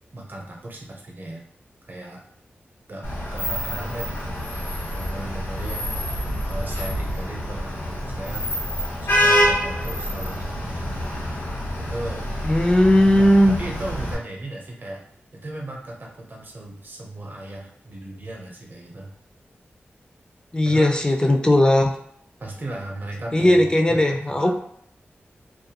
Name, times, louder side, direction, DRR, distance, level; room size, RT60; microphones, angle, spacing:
voice 1, 0.1-1.4 1.9-2.2 2.9-5.9 6.5-8.5 9.0-10.9 11.8-12.3 13.2-15.0 15.3-19.2 20.7-20.9 22.4-24.5, right 1 dB, 50° right, -1 dB, 0.6 m, -36 dB
Vehicle horn car horn honking / Traffic noise roadway noise, 3.0-14.1, equal, 80° left, 1.1 m, -26 dB
voice 2, 12.4-13.6 20.5-22.0 23.3-24.5, left 1 dB, 20° left, 3 dB, 0.3 m, -17 dB
2.4 x 2.2 x 2.8 m, 0.69 s
wide cardioid pair, 70°, 4 cm